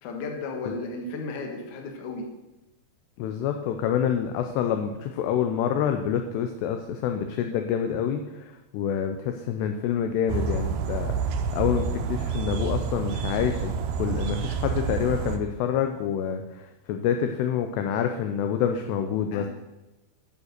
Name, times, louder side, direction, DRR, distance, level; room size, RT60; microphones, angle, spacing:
voice 1, 0.0-2.2 19.3-19.5, left 3 dB, 65° left, 2 dB, 2.1 m, -34 dB
voice 2, 3.2-19.5, left 8 dB, 85° left, 6 dB, 2.4 m, -27 dB
sound 1, 10.3-15.4, right 6 dB, 90° right, 2.1 m, -28 dB
9.0 x 7.0 x 6.5 m, 1.1 s
omnidirectional pair, 5.4 m